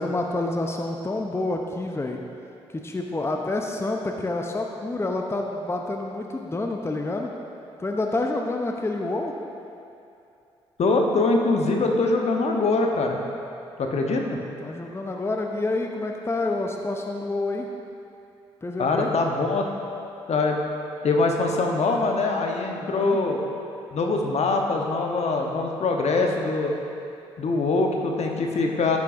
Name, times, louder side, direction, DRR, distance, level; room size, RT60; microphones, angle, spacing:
voice 1, 0.0-2.2 2.8-7.3 7.8-9.3 14.6-17.7 18.6-19.1 22.8-23.2, left 2 dB, 20° left, 2 dB, 0.7 m, -28 dB
voice 2, 10.8-13.2 13.8-14.4 18.8-19.7 20.3-20.6 21.0-23.4 23.9-26.7 27.4-29.0, left 3 dB, 50° left, 2 dB, 1.0 m, -23 dB
10.5 x 8.2 x 2.6 m, 2.6 s
hypercardioid pair, 45°, 14 cm